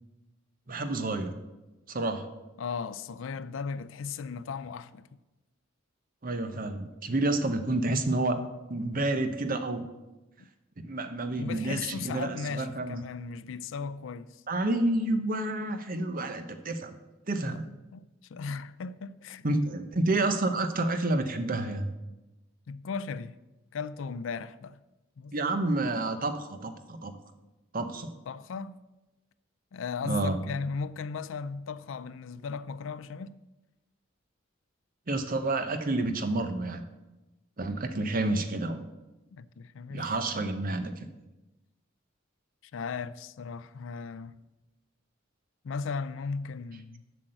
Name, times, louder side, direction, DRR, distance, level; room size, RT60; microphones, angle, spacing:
voice 1, 0.7-1.4 1.9-2.2 6.2-8.4 8.7-9.8 10.8-13.0 14.5-16.9 17.3-17.6 19.4-21.9 25.3-27.1 27.7-28.1 30.0-30.4 35.1-36.8 37.6-38.9 39.9-41.1, right 2 dB, 45° right, 0.9 m, -29 dB
voice 2, 2.6-5.1 11.4-14.4 17.4-17.6 17.9-19.5 22.7-23.4 23.7-24.8 25.2-25.3 28.3-28.8 29.7-33.4 39.3-40.1 42.7-44.3 45.6-47.0, left 5 dB, 70° left, 0.4 m, -36 dB
7.8 x 6.0 x 7.8 m
head